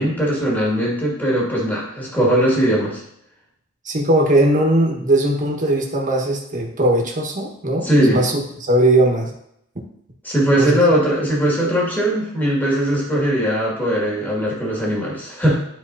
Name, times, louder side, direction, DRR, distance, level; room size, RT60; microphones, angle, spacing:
voice 1, 0.0-3.0 7.8-8.2 10.2-15.6, equal, 10° left, -5 dB, 2.1 m, -19 dB
voice 2, 3.8-9.3 10.6-10.8, right 1 dB, 40° right, 1 dB, 1.4 m, -19 dB
12.0 x 4.4 x 2.7 m, 0.76 s
head